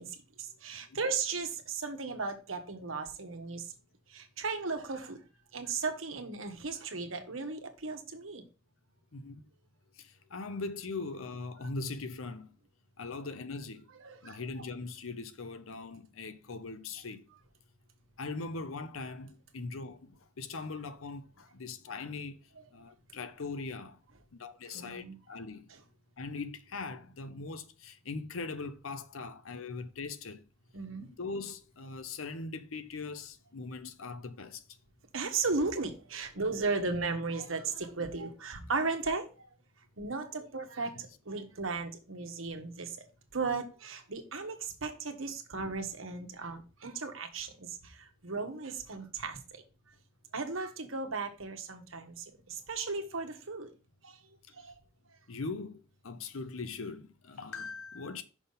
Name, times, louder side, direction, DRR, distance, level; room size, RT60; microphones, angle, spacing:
voice 1, 0.0-3.7 4.1-5.2 5.5-8.4 14.0-14.4 24.7-25.2 30.7-31.2 35.1-39.3 40.0-43.0 43.3-49.6 50.3-53.7 54.0-54.2 54.6-54.7, right 4 dB, 75° right, 1.2 m, -36 dB
voice 2, 10.0-12.5 13.0-13.9 14.2-17.2 18.2-22.4 22.7-24.0 24.3-25.7 26.2-30.4 31.0-34.6 40.9-41.1 55.3-58.2, left 3 dB, 80° left, 0.8 m, -40 dB
6.0 x 5.3 x 4.0 m
head